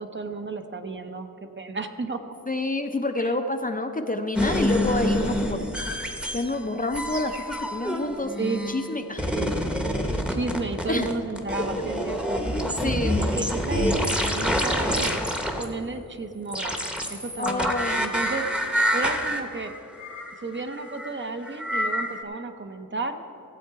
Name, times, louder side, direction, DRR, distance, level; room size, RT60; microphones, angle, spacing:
voice 1, 0.0-2.4 3.2-3.3 8.4-8.6 9.3-9.5 10.3-12.4 12.8-15.2 15.6-18.5 18.9-19.7 20.4-23.2, right 3 dB, 35° right, 7 dB, 0.6 m, -33 dB
voice 2, 2.5-6.1 6.3-8.3 8.7-9.3 10.9-11.1 12.8-13.2 17.4-18.0, left 2 dB, 25° left, 6 dB, 0.5 m, -28 dB
sound 1, 4.4-6.6 6.9-8.9 9.2-15.6 16.5-22.2, equal, 5° right, 0.8 m, -27 dB
15.5 x 7.7 x 4.6 m, 2.8 s
wide cardioid pair, 140°, 34 cm